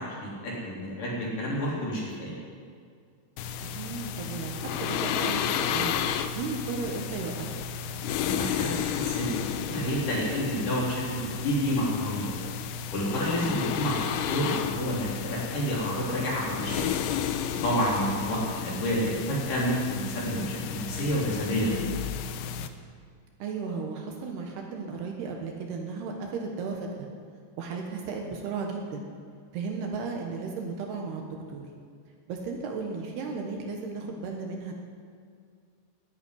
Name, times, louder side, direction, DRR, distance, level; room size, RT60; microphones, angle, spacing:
voice 1, 0.0-2.3 8.2-12.3 12.9-16.8 17.6-21.9, equal, 50° left, -5 dB, 5.0 m, -29 dB
sound 1, 3.4-22.7, left 8 dB, 80° left, 2.3 m, -32 dB
voice 2, 3.6-5.9 6.4-7.6 13.6-13.8 18.1-18.5 23.4-27.1 27.6-29.1 29.5-31.2 31.5-31.7 32.3-34.7, right 4 dB, 70° right, 1 dB, 3.1 m, -35 dB
12.0 x 10.0 x 9.9 m, 2.1 s
omnidirectional pair, 5.2 m